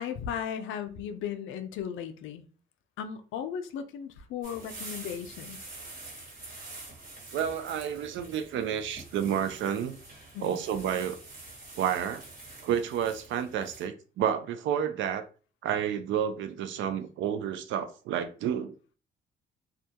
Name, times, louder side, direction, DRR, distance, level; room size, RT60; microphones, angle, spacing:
voice 1, 0.0-2.4 3.0-5.6 10.3-10.6, left 8 dB, 80° left, 0.4 m, -36 dB
sound 1, 4.4-13.8, right 2 dB, 45° right, 1.3 m, -46 dB
voice 2, 7.3-10.0 10.4-11.2 11.8-12.2 12.6-15.3 15.6-18.7, right 9 dB, 75° right, 0.4 m, -30 dB
2.3 x 2.2 x 2.7 m
cardioid pair, 90°, 20 cm